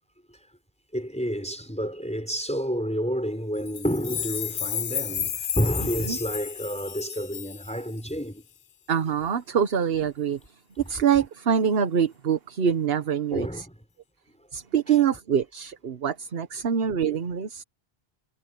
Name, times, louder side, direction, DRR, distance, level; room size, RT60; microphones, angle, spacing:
voice 1, 0.9-8.4 13.3-13.8 17.1-17.2, equal, 5° left, 4.8 m, -29 dB
sound 1, 3.7-8.1, left 9 dB, 75° left, 1.0 m, -32 dB
voice 2, 8.9-10.5 10.9-13.7 14.5-17.6, right 8 dB, 70° right, 1.2 m, -25 dB
omnidirectional pair, 1.0 m